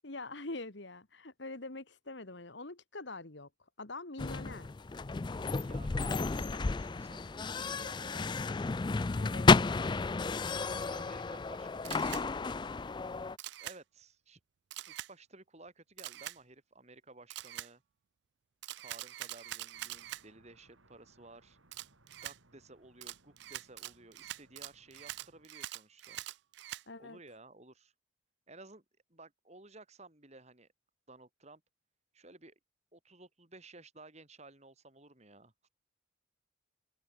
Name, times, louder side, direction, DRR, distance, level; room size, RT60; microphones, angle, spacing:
voice 1, 0.0-3.5 3.8-4.7 9.2-9.6 26.9-27.2, left 2 dB, 60° left, 1.9 m, -44 dB
sound 1, 4.2-13.4, left 4 dB, 20° left, 0.3 m, -31 dB
voice 2, 5.2-8.5 10.7-12.3 13.6-14.4 14.9-17.8 18.8-21.6 22.2-26.2 27.0-27.9 28.5-28.8 29.1-30.7 31.1-31.6 32.1-32.6 32.9-35.5, right 2 dB, 35° right, 3.2 m, -55 dB
Camera, 11.8-12.2 13.4-13.8 14.7-15.1 16.0-16.4 17.3-17.7 18.6-20.2 21.7-22.4 23.0-26.8, right 14 dB, 55° right, 0.3 m, -44 dB
sound 2, 19.7-25.5, right 2 dB, 80° right, 3.7 m, -67 dB
head